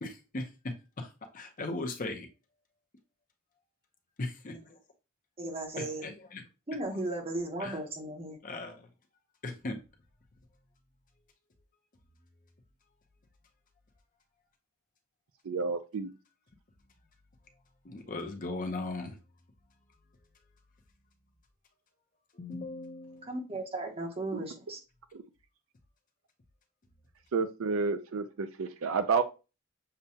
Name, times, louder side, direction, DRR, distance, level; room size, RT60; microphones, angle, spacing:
voice 1, 0.0-2.3 4.2-4.8 5.8-6.4 7.6-7.8 8.4-8.8 9.4-9.8 17.8-19.2 22.3-23.3, left 2 dB, 40° left, 0.7 m, -38 dB
voice 2, 5.4-6.0 6.7-8.4 23.2-24.8, right 2 dB, 25° right, 0.9 m, -36 dB
voice 3, 15.4-16.1 24.3-24.4 25.1-25.2 27.3-29.2, right 5 dB, 70° right, 0.5 m, -30 dB
6.7 x 2.2 x 2.7 m
head